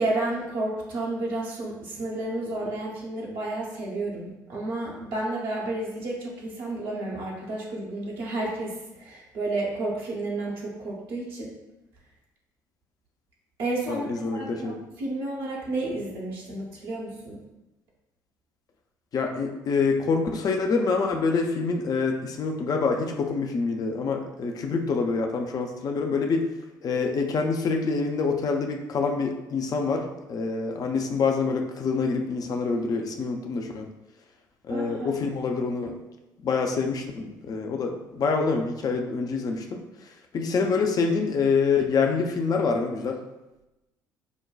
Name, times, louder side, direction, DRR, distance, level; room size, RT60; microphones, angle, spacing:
voice 1, 0.0-11.5 13.6-17.4 34.7-35.1, right 2 dB, 60° right, -4 dB, 0.8 m, -31 dB
voice 2, 13.9-14.8 19.1-26.4 26.8-33.9 34.6-36.0 36.4-43.2, left 4 dB, 40° left, 3 dB, 0.5 m, -26 dB
5.1 x 2.2 x 2.3 m, 0.99 s
figure-of-eight pair, 50°, 10 cm